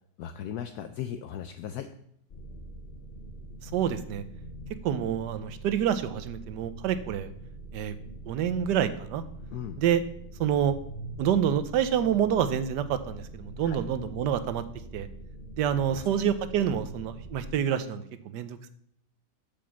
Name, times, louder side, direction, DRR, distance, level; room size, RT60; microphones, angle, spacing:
voice 1, 0.2-1.9 9.5-9.8 13.6-13.8 15.9-16.1, left 9 dB, 70° left, 9 dB, 1.0 m, -37 dB
sound 1, 2.3-17.5, right 1 dB, 45° left, 0.7 m, -43 dB
voice 2, 3.7-4.2 4.8-7.3 7.7-7.9 8.3-9.2 9.8-10.0 10.4-10.8 11.2-14.6 14.9-15.1 15.6-18.7, right 9 dB, 80° right, 12 dB, 1.3 m, -27 dB
8.6 x 5.3 x 7.0 m, 0.72 s
omnidirectional pair, 1.8 m